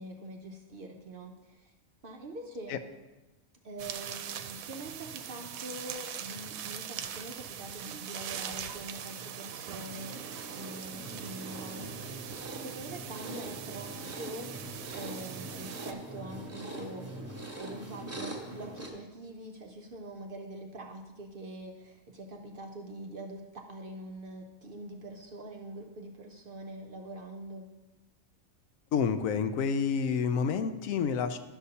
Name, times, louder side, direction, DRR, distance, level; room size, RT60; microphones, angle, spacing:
voice 1, 0.0-1.7 2.0-2.8 3.6-11.9 12.6-27.7, right 1 dB, 55° right, 2 dB, 0.6 m, -44 dB
sound 1, 3.8-15.9, right 9 dB, 85° right, 1.0 m, -42 dB
sound 2, 9.8-18.9, right 2 dB, 15° right, 0.8 m, -42 dB
voice 2, 28.9-31.4, left 6 dB, 80° left, 9 dB, 1.0 m, -29 dB
11.5 x 6.5 x 2.8 m, 1.1 s
omnidirectional pair, 1.4 m